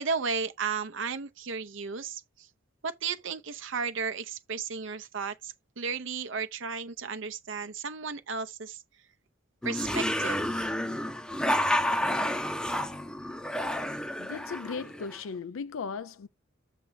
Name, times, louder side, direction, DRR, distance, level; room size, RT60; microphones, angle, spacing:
voice 1, 0.0-2.5 2.8-8.8 9.6-10.7, right 5 dB, 65° right, 0.7 m, -34 dB
sound 1, 9.6-15.2, left 1 dB, 5° left, 0.6 m, -30 dB
voice 2, 14.2-16.3, left 5 dB, 80° left, 0.4 m, -37 dB
6.9 x 3.4 x 5.6 m
head